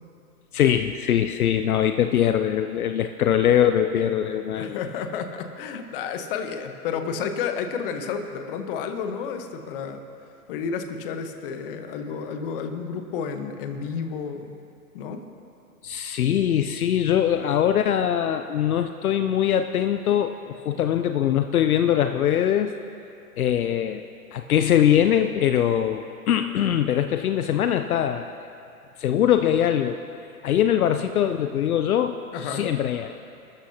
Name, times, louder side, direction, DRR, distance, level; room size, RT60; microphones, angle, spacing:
voice 1, 0.5-4.8 15.8-22.7 23.4-24.0 24.3-28.4 29.0-30.0 30.4-32.2 32.4-33.2, left 10 dB, 65° left, 8 dB, 0.7 m, -22 dB
voice 2, 4.5-10.0 10.5-14.6 14.9-15.2 32.3-32.7, left 6 dB, 35° left, 6 dB, 1.2 m, -31 dB
28.5 x 13.0 x 2.9 m, 2.7 s
hypercardioid pair, 140°, 46 cm